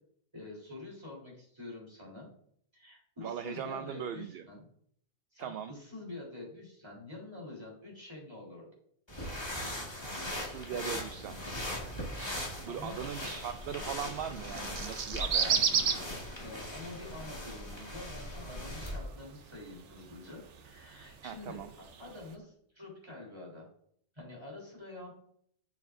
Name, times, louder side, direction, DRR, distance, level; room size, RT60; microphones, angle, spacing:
voice 1, 0.3-2.3 2.7-4.7 5.3-8.7 10.7-11.0 12.7-13.3 15.3-15.7 16.4-23.6 24.1-25.1, left 2 dB, 25° right, -3 dB, 3.9 m, -47 dB
voice 2, 3.2-4.5 5.4-5.7 10.4-11.3 12.2-15.7 21.2-21.7, right 8 dB, 65° right, 9 dB, 0.7 m, -40 dB
sound 1, 9.1-19.0, left 1 dB, 20° left, 2.0 m, -40 dB
sound 2, 10.8-22.4, right 6 dB, 90° right, 1.1 m, -37 dB
12.0 x 7.4 x 2.6 m, 0.67 s
omnidirectional pair, 1.2 m